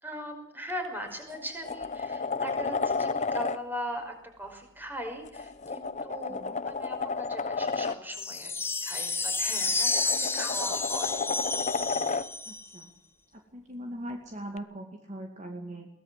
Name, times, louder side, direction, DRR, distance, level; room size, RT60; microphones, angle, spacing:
voice 1, 0.0-11.2, equal, 10° right, 5 dB, 5.3 m, -39 dB
sound 1, 0.7-0.9 1.3-3.6 5.2-8.0 9.5-12.3 14.6-14.7, left 4 dB, 35° left, 0.8 m, -32 dB
voice 2, 6.3-6.6 12.5-12.9 13.5-15.9, right 1 dB, 35° right, 3 dB, 2.5 m, -40 dB
sound 2, 8.1-12.8, left 3 dB, 10° left, 1.2 m, -30 dB
22.5 x 18.0 x 7.7 m, 0.77 s
head